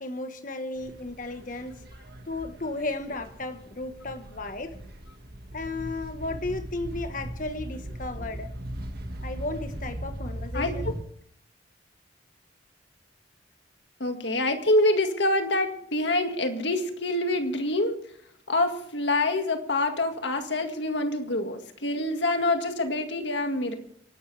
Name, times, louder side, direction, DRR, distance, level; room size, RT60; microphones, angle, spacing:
voice 1, 0.0-1.8 2.3-4.8 5.5-8.5 9.2-10.8, left 2 dB, 45° left, 1.3 m, -34 dB
sound 1, 0.8-11.0, right 1 dB, 55° right, 1.8 m, -39 dB
voice 2, 10.5-10.9 14.0-18.0 18.5-23.7, left 2 dB, 70° left, 2.0 m, -26 dB
26.0 x 12.5 x 3.4 m
head